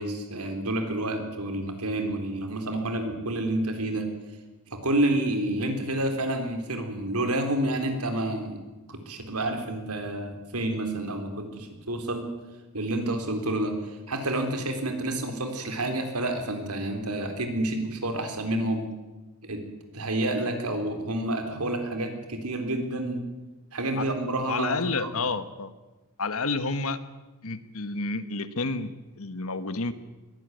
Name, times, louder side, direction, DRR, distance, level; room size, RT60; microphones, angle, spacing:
voice 1, 0.0-4.1 4.7-8.6 8.9-12.3 12.7-18.9 19.4-19.7 19.9-23.3 23.7-25.2, right 1 dB, 80° right, 5 dB, 3.8 m, -29 dB
voice 2, 24.5-25.7 26.2-27.0 27.4-29.9, left 3 dB, 70° left, 12 dB, 1.5 m, -30 dB
22.0 x 17.5 x 9.3 m, 1.2 s
head